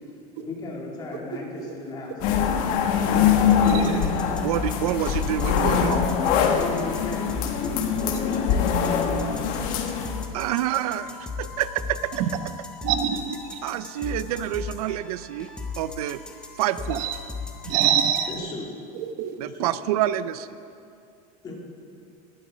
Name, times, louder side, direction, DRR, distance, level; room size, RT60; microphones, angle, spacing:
voice 1, 0.4-2.7 6.5-7.3 7.5-9.8 17.7-17.8 18.3-18.7 19.4-19.7 21.4-21.5, left 3 dB, 20° left, -2 dB, 2.8 m, -36 dB
sound 1, 2.2-10.3, left 7 dB, 45° left, 1.3 m, -23 dB
sound 2, 3.4-18.3, left 4 dB, 5° left, 1.2 m, -37 dB
voice 2, 3.6-4.0 12.2-12.3 12.8-13.6 16.9-17.2 17.7-18.3 18.9-19.3, right 9 dB, 50° right, 8 dB, 0.9 m, -25 dB
voice 3, 4.4-6.1 10.3-12.1 13.6-15.5 15.8-16.2 16.6-17.1 19.4-20.5, right 12 dB, 90° right, 14 dB, 0.6 m, -27 dB
17.5 x 12.0 x 5.1 m, 2.4 s
supercardioid pair, 160°, 19 cm